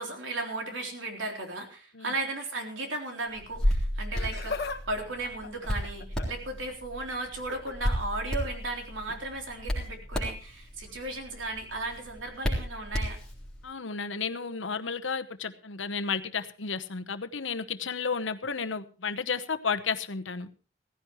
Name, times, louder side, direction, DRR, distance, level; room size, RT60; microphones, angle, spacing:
voice 1, 0.0-13.2, right 2 dB, 85° right, 2 dB, 3.7 m, -35 dB
Hands, 3.4-13.6, equal, 5° left, 3.7 m, -33 dB
Laughter, 4.0-4.8 5.1-6.5 7.3-7.7 9.0-9.2 10.1-10.2, left 4 dB, 55° left, 1.4 m, -38 dB
voice 2, 13.6-20.5, left 5 dB, 85° left, 10 dB, 1.1 m, -32 dB
16.5 x 16.0 x 3.1 m, 0.35 s
head